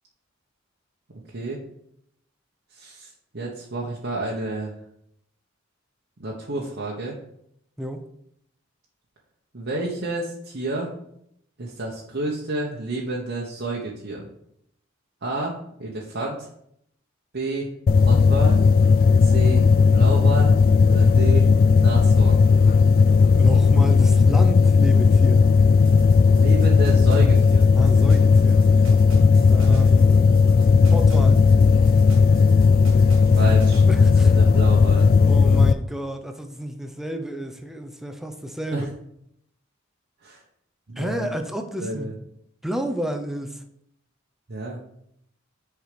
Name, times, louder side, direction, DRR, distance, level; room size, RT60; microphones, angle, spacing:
voice 1, 2.7-4.7 6.2-7.2 9.5-10.9 11.6-14.3 15.2-15.5 15.8-16.5 17.3-17.7 18.0-18.6 19.2-19.6 19.9-20.5 20.8-21.5 21.8-22.4 26.3-27.7 33.2-33.8 34.4-35.1 38.7-38.9 40.2-40.4 40.9-41.3 41.8-42.1 44.5-44.8, right 2 dB, 60° right, -3 dB, 1.1 m, -30 dB
sound 1, 17.9-35.7, left 5 dB, 45° left, 0.3 m, -16 dB
voice 2, 23.0-25.5 27.7-28.7 29.5-30.4 30.9-31.4 33.9-34.4 35.2-38.9 41.0-42.2 42.6-43.6, equal, ahead, 6 dB, 0.7 m, -31 dB
sound 2, 25.8-33.8, right 2 dB, 90° right, 1.4 m, -43 dB
6.6 x 4.8 x 5.1 m, 0.72 s
head